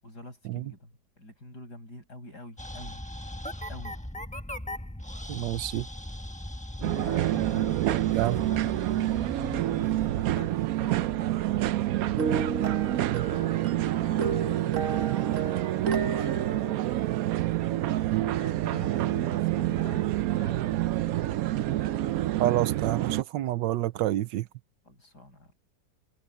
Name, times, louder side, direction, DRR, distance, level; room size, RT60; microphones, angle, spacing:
voice 1, 0.0-3.0 3.7-4.0 6.8-8.6 8.9-12.2 13.3-14.7 15.7-17.0 17.9-21.2 24.8-25.5, left 1 dB, 65° left, 8.5 m, -45 dB
sound 1, 2.6-11.1, left 1 dB, 5° left, 0.9 m, -39 dB
voice 2, 5.3-5.9 7.8-8.4 18.1-18.2 22.4-24.5, right 14 dB, 85° right, 1.3 m, -28 dB
sound 2, 6.8-23.2, right 14 dB, 70° right, 0.9 m, -28 dB
sound 3, 12.2-17.6, right 6 dB, 50° right, 1.3 m, -33 dB
omnidirectional pair, 1.9 m